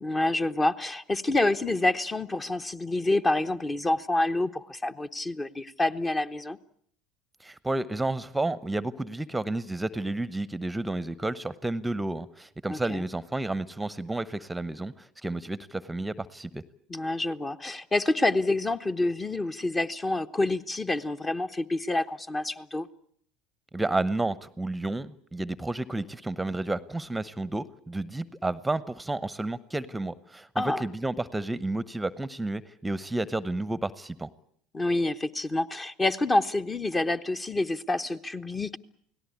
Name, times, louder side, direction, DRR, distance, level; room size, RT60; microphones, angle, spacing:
voice 1, 0.0-6.6 12.7-13.0 16.9-22.9 30.6-30.8 34.7-38.8, left 2 dB, 20° left, 9 dB, 1.1 m, -27 dB
voice 2, 7.4-16.6 23.7-34.3, right 2 dB, 10° right, 17 dB, 0.9 m, -31 dB
29.0 x 18.0 x 8.4 m, 0.65 s
figure-of-eight pair, 70°, 0 cm